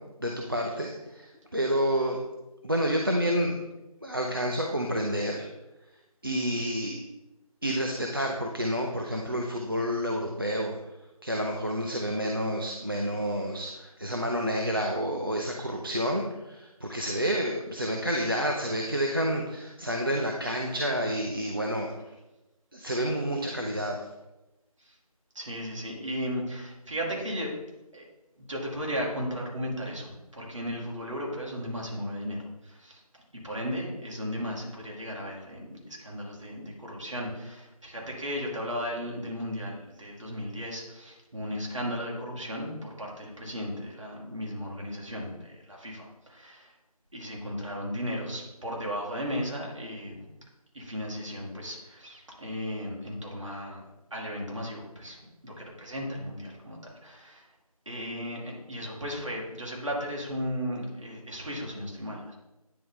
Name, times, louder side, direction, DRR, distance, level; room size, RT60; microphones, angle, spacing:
voice 1, 0.2-1.3 1.5-2.2 2.6-3.6 4.0-5.5 6.2-7.0 7.6-10.8 11.2-21.9 22.7-24.1, equal, 35° right, 0 dB, 0.5 m, -29 dB
voice 2, 25.3-27.6 27.9-28.0 28.5-33.0 33.3-46.7 47.1-50.3 50.7-53.8 54.1-57.5 57.9-62.3, equal, 50° right, -3 dB, 2.1 m, -35 dB
9.4 x 3.8 x 3.7 m, 0.99 s
figure-of-eight pair, 170°, 19 cm